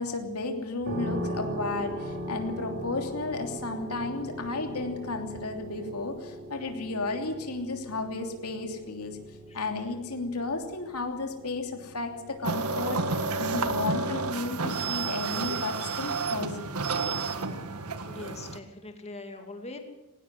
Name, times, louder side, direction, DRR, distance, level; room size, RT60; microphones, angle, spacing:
voice 1, 0.0-9.2 9.5-16.7, left 3 dB, 85° left, 4 dB, 3.1 m, -33 dB
sound 1, 0.8-15.5, equal, 50° right, 3.7 m, -40 dB
sound 2, 12.4-18.6, right 4 dB, 80° right, 1.7 m, -30 dB
voice 2, 18.1-19.8, left 2 dB, 30° left, 5 dB, 2.5 m, -42 dB
19.5 x 19.0 x 7.6 m, 1.0 s
head